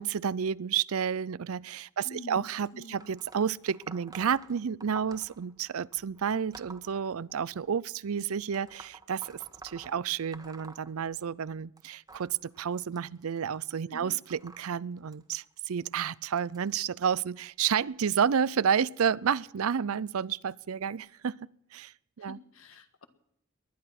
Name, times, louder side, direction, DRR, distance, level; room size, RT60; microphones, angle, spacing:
voice 1, 0.0-21.4 21.7-22.4, right 7 dB, 75° right, 0.5 m, -30 dB
voice 2, 2.0-3.1 13.9-14.2 22.2-23.1, left 1 dB, 70° left, 1.6 m, -47 dB
sound 1, 2.6-7.7 8.5-11.5 11.8-17.1 17.9-18.2 19.2-19.3 20.2-20.3 21.0-21.1, right 3 dB, 20° right, 1.3 m, -52 dB
19.5 x 11.5 x 5.9 m
head